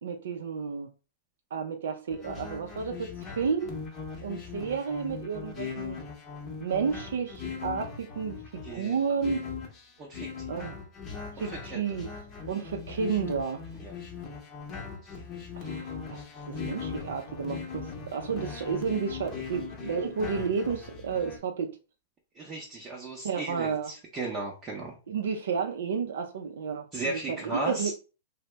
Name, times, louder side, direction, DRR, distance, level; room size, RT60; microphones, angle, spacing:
voice 1, 0.0-0.9 1.5-3.8 4.2-6.0 6.6-9.4 10.5-10.8 11.4-12.1 12.5-13.6 15.5-21.7 23.2-23.9 25.1-27.9, right 6 dB, 80° right, 0.4 m, -31 dB
sound 1, 2.1-21.4, left 5 dB, 25° left, 0.8 m, -39 dB
voice 2, 8.6-9.0 10.0-10.3 11.7-11.9 13.8-13.9 15.0-15.1 22.4-24.9 26.9-27.9, right 2 dB, 20° right, 0.6 m, -35 dB
2.7 x 2.0 x 3.2 m
hypercardioid pair, 140°, 0 cm